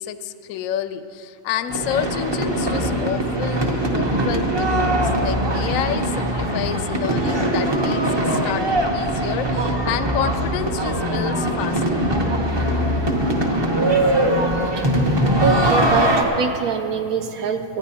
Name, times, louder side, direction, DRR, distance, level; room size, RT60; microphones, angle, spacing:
voice 1, 0.0-12.1, left 10 dB, 70° left, 11 dB, 0.8 m, -29 dB
sound 1, 1.7-16.2, right 1 dB, 25° right, 0.6 m, -21 dB
voice 2, 13.9-14.5 14.8-14.9 15.4-17.8, right 6 dB, 70° right, 7 dB, 1.0 m, -25 dB
26.5 x 9.4 x 2.8 m, 2.8 s
omnidirectional pair, 1.7 m